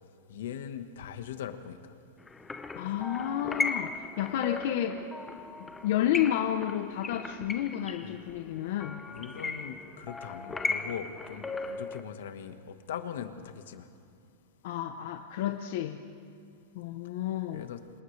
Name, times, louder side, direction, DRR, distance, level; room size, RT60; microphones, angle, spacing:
voice 1, 0.3-1.8 3.0-3.1 8.0-8.2 9.1-13.9 17.5-17.8, left 8 dB, 70° left, 8 dB, 1.4 m, -40 dB
sound 1, 2.3-12.0, left 3 dB, 10° left, 0.7 m, -37 dB
voice 2, 2.8-5.0 5.8-9.0 14.6-16.0 16.7-17.6, left 11 dB, 50° left, 6 dB, 0.8 m, -31 dB
29.5 x 26.5 x 3.3 m, 2.6 s
supercardioid pair, 175°, 0 cm